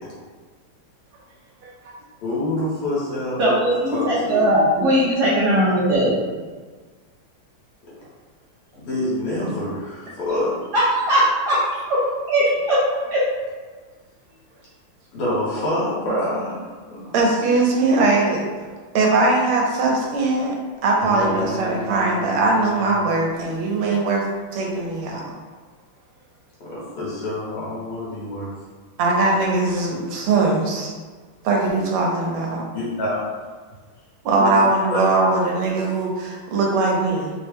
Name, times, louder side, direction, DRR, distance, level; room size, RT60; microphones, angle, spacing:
voice 1, 2.2-3.6 3.9-4.4 8.7-10.5 15.1-17.0 26.6-28.5 32.7-33.2 34.4-35.0, left 1 dB, 80° left, -8 dB, 2.3 m, -26 dB
voice 2, 3.4-6.2 10.7-12.8 13.1-13.3, equal, 65° right, -7 dB, 1.0 m, -19 dB
voice 3, 17.1-18.4 18.9-20.6 20.8-24.3 24.5-25.2 29.0-30.9 31.4-32.7 34.2-37.3, right 3 dB, 80° right, -1 dB, 1.6 m, -20 dB
sound 1, 21.0-23.6, equal, 65° left, 0.9 m, -33 dB
4.5 x 2.1 x 3.3 m, 1.4 s
omnidirectional pair, 2.4 m